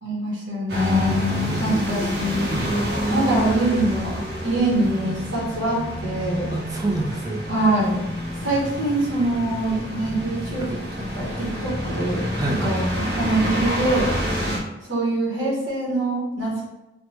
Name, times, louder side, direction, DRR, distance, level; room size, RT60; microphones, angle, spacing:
voice 1, 0.0-1.2 1.6-6.4 7.5-8.0 8.4-10.8 11.2-12.2 12.6-14.1 14.8-16.7, right 1 dB, 80° right, -5 dB, 1.0 m, -24 dB
sound 1, 0.7-14.6, equal, 55° right, 0.7 m, -27 dB
voice 2, 1.3-3.0 6.5-7.5 10.6-10.7 12.3-12.7, right 1 dB, 20° right, -1 dB, 0.4 m, -29 dB
3.3 x 2.0 x 3.0 m, 1.0 s
head